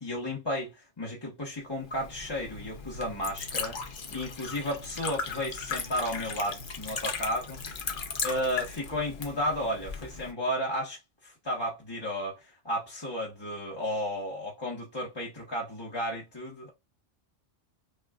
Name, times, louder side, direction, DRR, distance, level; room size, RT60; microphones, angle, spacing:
voice 1, 0.0-3.8 4.1-7.6 8.2-16.7, equal, 25° left, 0.9 m, -33 dB
Liquid, 1.8-10.3, left 5 dB, 50° left, 0.8 m, -37 dB
5.4 x 2.3 x 2.3 m
omnidirectional pair, 1.2 m